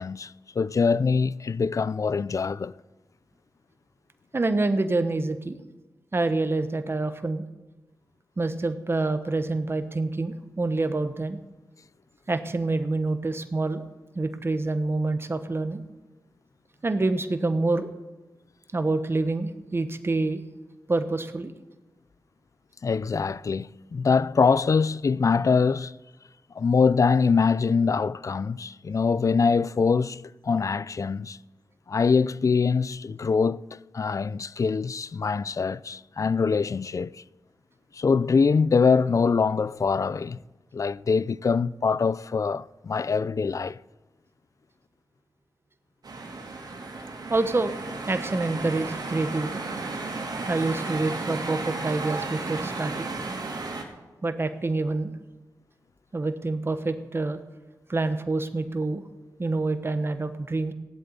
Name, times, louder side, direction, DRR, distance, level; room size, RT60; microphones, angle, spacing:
voice 1, 0.0-2.7 22.8-25.9 26.6-31.4 31.9-33.6 33.9-37.2 37.9-40.4 40.7-43.8, left 5 dB, 50° left, 0.4 m, -24 dB
voice 2, 4.3-5.6 6.1-7.4 8.4-11.4 12.3-13.9 14.1-15.8 16.8-17.9 18.7-20.4 20.9-21.5 47.3-47.7 48.1-49.6 50.5-53.1 54.2-55.1 56.1-57.4 57.9-59.0 59.4-60.7, right 2 dB, 35° right, 1.2 m, -27 dB
sound 1, 46.0-53.8, right 3 dB, 75° right, 2.8 m, -34 dB
16.5 x 8.0 x 9.7 m
wide cardioid pair, 85°, 7 cm